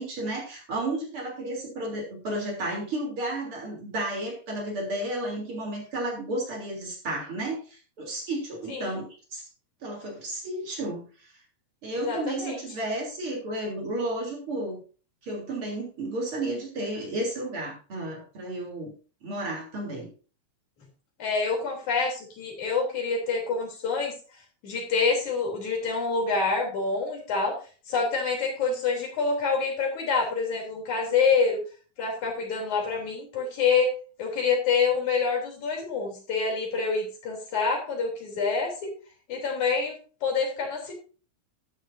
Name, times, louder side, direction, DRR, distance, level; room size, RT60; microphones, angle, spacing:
voice 1, 0.0-9.4 9.8-11.3 11.8-14.8 15.2-18.9 19.2-20.1, right 1 dB, 45° right, 0 dB, 4.1 m, -32 dB
voice 2, 12.0-12.6 21.2-24.1 24.6-27.6 27.9-31.6 32.0-33.9 34.2-38.9 39.3-40.9, left 4 dB, 75° left, 0 dB, 4.7 m, -27 dB
13.0 x 9.9 x 2.7 m, 0.37 s
omnidirectional pair, 3.4 m